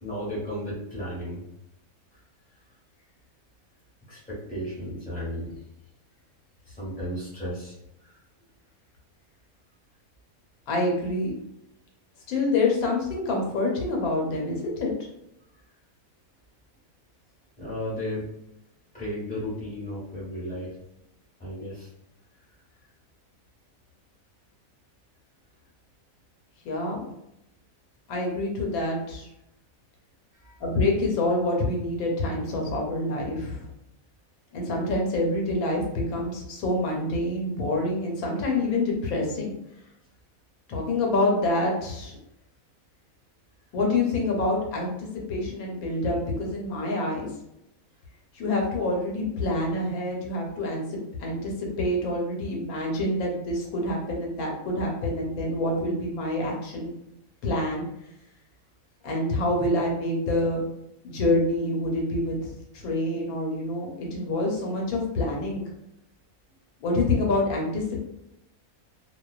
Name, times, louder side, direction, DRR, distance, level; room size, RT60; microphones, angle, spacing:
voice 1, 0.0-1.4 4.1-5.5 6.7-7.7 8.0-8.2 17.6-18.3 18.9-20.7 21.4-21.9 30.3-30.6, equal, 5° left, -8 dB, 1.0 m, -34 dB
voice 2, 10.7-11.3 12.3-14.9 26.6-27.0 28.1-29.3 30.6-33.6 34.5-39.5 40.7-42.2 43.7-47.3 48.3-56.9 57.4-57.9 59.0-60.6 61.0-62.4 62.7-65.6 66.8-68.0, left 2 dB, 85° left, -1 dB, 1.1 m, -27 dB
2.5 x 2.2 x 2.3 m, 0.83 s
omnidirectional pair, 1.5 m